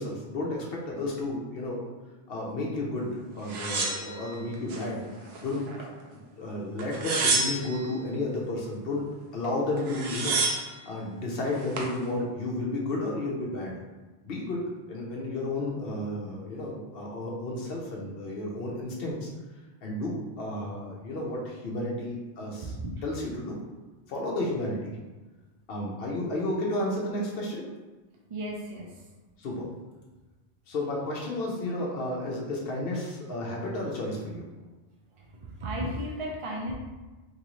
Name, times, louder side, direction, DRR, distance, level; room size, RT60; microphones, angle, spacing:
voice 1, 0.0-1.8 2.3-5.0 5.4-5.6 6.1-9.0 9.3-10.4 10.9-13.8 14.2-19.3 19.8-22.7 23.0-23.6 24.1-24.9 25.7-27.7 29.4-29.7 30.7-34.4, left 1 dB, 65° left, -2 dB, 0.9 m, -32 dB
sound 1, 3.5-4.8 5.3-6.1 6.8-7.9 9.4-9.5 9.8-10.8 11.4-11.9, right 3 dB, 75° right, 0.9 m, -29 dB
voice 2, 28.3-29.0 35.2-36.7, right 1 dB, 45° right, -1 dB, 0.4 m, -34 dB
3.0 x 2.6 x 3.0 m, 1.2 s
omnidirectional pair, 1.1 m